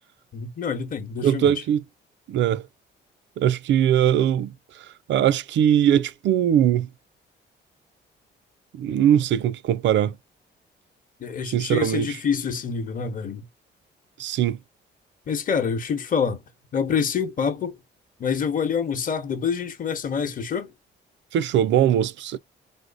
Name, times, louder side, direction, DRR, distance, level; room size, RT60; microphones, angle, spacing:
voice 1, 0.3-1.6 11.2-13.5 15.3-16.4 16.7-17.8 18.2-20.7, left 6 dB, 45° left, 0.9 m, -26 dB
voice 2, 1.2-1.8 2.3-2.6 3.4-6.9 8.7-10.2 11.5-12.2 14.2-14.6 21.3-22.4, right 10 dB, 70° right, 0.4 m, -21 dB
3.3 x 2.0 x 3.8 m
cardioid pair, 90°, 20 cm